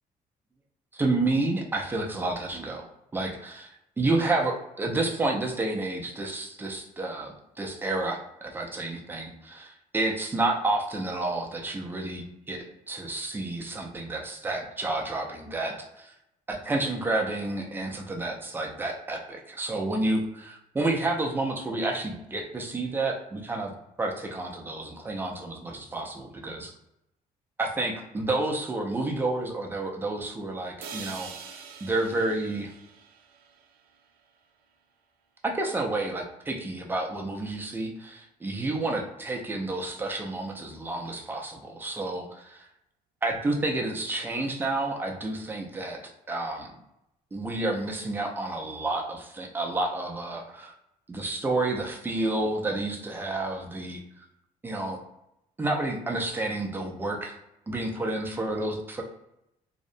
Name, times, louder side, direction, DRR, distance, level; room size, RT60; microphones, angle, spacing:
voice 1, 0.9-3.6 4.0-16.1 16.5-23.7 24.0-26.7 27.6-31.3 31.8-32.7 35.4-42.7 43.2-46.0 46.3-46.7 47.3-50.7 51.1-54.0 54.6-55.0 55.6-57.3 57.7-59.0, right 2 dB, 15° right, 0 dB, 0.4 m, -30 dB
sound 1, 30.8-34.8, right 6 dB, 80° right, 0.4 m, -45 dB
2.7 x 2.0 x 2.5 m, 0.84 s
cardioid pair, 145°, 15 cm